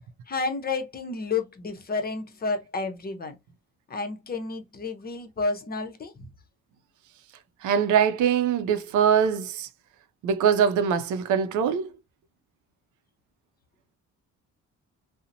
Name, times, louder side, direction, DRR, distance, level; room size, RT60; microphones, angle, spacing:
voice 1, 0.3-3.3 3.9-6.3, left 4 dB, 30° left, 0.6 m, -31 dB
voice 2, 7.6-9.7 10.2-11.9, right 7 dB, 80° right, 0.5 m, -22 dB
2.7 x 2.0 x 2.5 m
cardioid pair, 90°, 30 cm